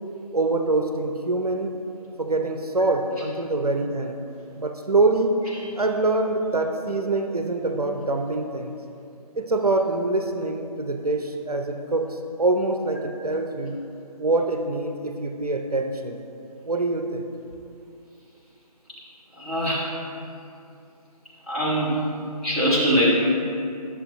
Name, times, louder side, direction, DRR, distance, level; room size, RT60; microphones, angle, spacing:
voice 1, 0.3-1.7 2.2-4.2 4.5-5.3 5.8-8.8 9.3-13.8 14.2-16.2 16.6-17.2, right 2 dB, 70° right, 4 dB, 0.7 m, -24 dB
voice 2, 19.4-19.8 21.5-22.0 22.4-23.1, equal, ahead, -15 dB, 1.1 m, -22 dB
11.0 x 7.0 x 2.6 m, 2.6 s
figure-of-eight pair, 150°, 20 cm